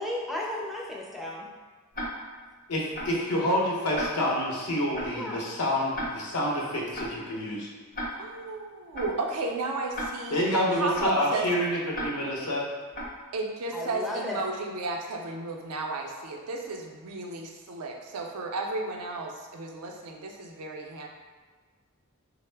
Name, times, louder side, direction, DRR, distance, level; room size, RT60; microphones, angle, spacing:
voice 1, 0.0-1.5 5.2-5.4 13.7-14.5, left 1 dB, ahead, -3 dB, 0.4 m, -34 dB
Tick-tock, 1.9-2.4 2.9-3.3 3.9-4.4 4.9-5.3 5.9-6.4 6.9-7.3 7.9-8.4 8.9-9.3 9.9-10.4 10.9-11.3 11.9-12.4 12.9-13.3, equal, 40° left, 0.6 m, -36 dB
voice 2, 2.7-7.7 10.3-12.7, left 1 dB, 80° left, -3 dB, 0.7 m, -28 dB
voice 3, 8.2-11.5 13.3-21.1, right 3 dB, 85° right, 2 dB, 0.5 m, -33 dB
3.7 x 2.0 x 3.2 m, 1.5 s
head